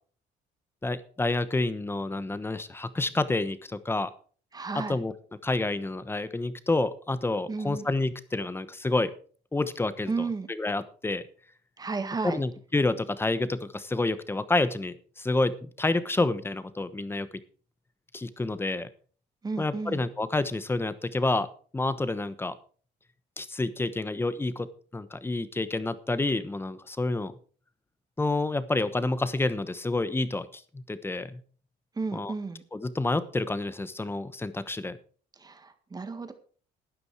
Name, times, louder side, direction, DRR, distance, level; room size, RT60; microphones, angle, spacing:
voice 1, 0.8-4.1 4.7-5.1 5.4-9.1 9.5-11.2 12.2-17.3 18.1-18.9 19.6-21.5 21.7-22.5 23.4-27.3 28.2-31.4 32.1-32.3 32.7-35.0, left 2 dB, 15° left, 14 dB, 1.0 m, -29 dB
voice 2, 4.5-5.0 7.5-7.9 10.1-10.5 11.8-12.4 19.4-20.1 32.0-32.6 35.4-36.3, right 4 dB, 20° right, 9 dB, 1.8 m, -33 dB
12.5 x 9.7 x 4.8 m, 0.42 s
cardioid pair, 110°, 17 cm